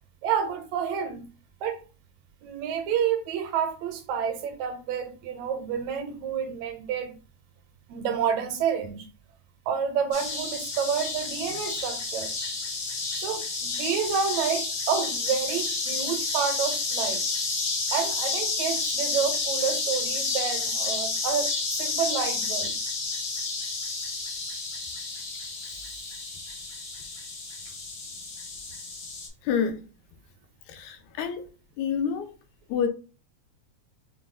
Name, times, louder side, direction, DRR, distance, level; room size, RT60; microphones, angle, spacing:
voice 1, 0.2-1.3 1.6-1.8 2.4-7.2 7.9-9.1 9.7-12.3 13.1-17.2 17.9-22.8, right 7 dB, 80° right, 1.8 m, -29 dB
sound 1, 10.1-29.3, left 3 dB, 65° left, 1.1 m, -30 dB
voice 2, 29.4-29.8 30.7-31.5 31.8-32.3 32.7-32.9, left 7 dB, 80° left, 1.9 m, -28 dB
5.7 x 2.3 x 2.5 m
omnidirectional pair, 3.3 m